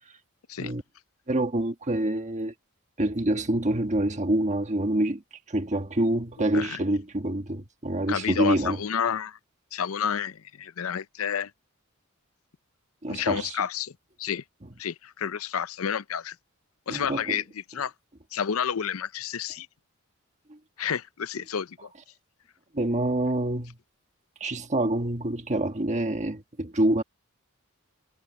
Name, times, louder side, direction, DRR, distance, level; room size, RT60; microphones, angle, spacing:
voice 1, 1.3-2.5 3.0-5.2 5.5-8.8 13.0-13.6 16.9-17.4 20.5-20.6 22.7-23.8 24.4-27.0, right 1 dB, 35° right, 1.4 m, -26 dB
voice 2, 8.1-9.4 9.7-11.5 13.1-13.9 14.2-14.4 14.8-16.4 16.9-17.4 17.7-17.9 18.3-19.7 20.8-21.9, left 7 dB, 75° left, 0.6 m, -30 dB
head